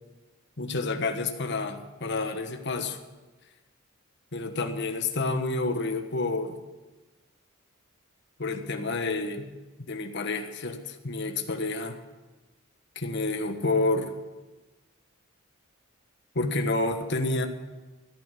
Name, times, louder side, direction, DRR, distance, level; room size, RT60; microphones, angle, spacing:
voice 1, 0.6-3.0 4.3-6.6 8.4-9.5 9.9-12.0 12.9-14.1 16.3-17.5, left 3 dB, 55° left, 6 dB, 1.3 m, -29 dB
14.5 x 8.9 x 8.3 m, 1.2 s
head